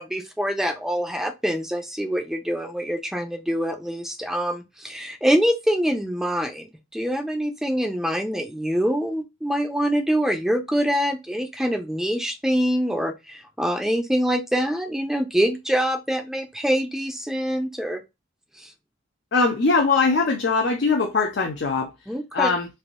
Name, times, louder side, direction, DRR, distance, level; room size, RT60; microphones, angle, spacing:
voice 1, 0.0-18.0 18.6-18.7 22.1-22.5, equal, ahead, 0.3 m, -25 dB
voice 2, 19.3-21.9 22.3-22.7, left 4 dB, 55° left, 0.5 m, -21 dB
3.2 x 2.5 x 2.4 m
head